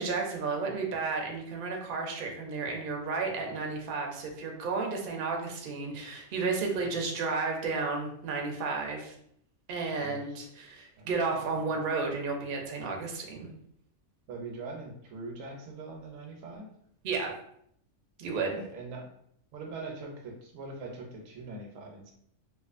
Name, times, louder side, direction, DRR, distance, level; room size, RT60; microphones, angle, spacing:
voice 1, 0.0-9.1 9.7-13.5 17.0-17.4 18.2-18.6, right 4 dB, 60° right, 1 dB, 0.6 m, -32 dB
voice 2, 10.0-10.4 11.0-11.8 14.3-16.7 18.3-19.1 19.5-22.1, right 3 dB, 80° right, 1 dB, 1.0 m, -43 dB
2.4 x 2.4 x 2.4 m, 0.69 s
omnidirectional pair, 1.4 m